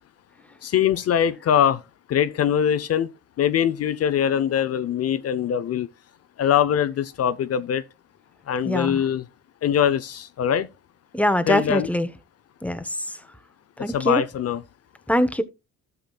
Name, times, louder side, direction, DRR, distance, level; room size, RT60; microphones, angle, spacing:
voice 1, 0.6-1.8 2.1-3.1 3.4-5.9 6.4-7.8 8.5-9.3 9.6-10.7 11.5-11.9 13.8-14.6, left 9 dB, 55° left, 0.6 m, -22 dB
voice 2, 8.6-9.0 11.1-12.1 12.6-12.9 13.8-14.2 15.1-15.4, left 1 dB, 5° left, 0.8 m, -22 dB
13.0 x 7.0 x 2.3 m
cardioid pair, 90°, 30 cm